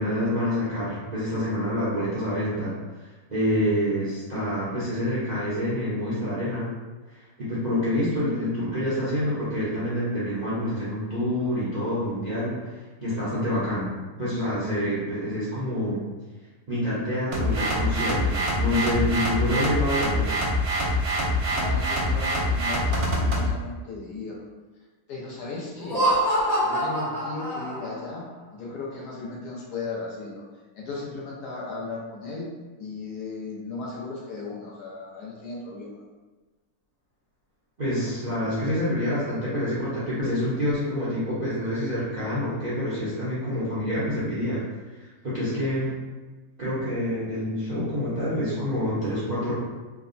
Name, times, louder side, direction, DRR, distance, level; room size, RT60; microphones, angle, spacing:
voice 1, 0.0-2.7 3.3-6.7 7.1-12.7 13.0-13.9 14.2-16.0 16.7-20.3 37.8-44.6 45.0-45.9 46.6-49.5, equal, 45° right, -11 dB, 0.5 m, -27 dB
sound 1, 17.3-23.5, equal, 80° right, 1.1 m, -25 dB
voice 2, 21.1-24.5 25.1-26.1 26.6-28.3 28.5-30.4 30.7-32.5 32.8-36.0, left 3 dB, 85° left, -4 dB, 1.3 m, -36 dB
Laughter, 25.7-28.1, right 1 dB, 70° left, 1.4 m, -25 dB
3.3 x 2.1 x 2.5 m, 1.3 s
omnidirectional pair, 1.6 m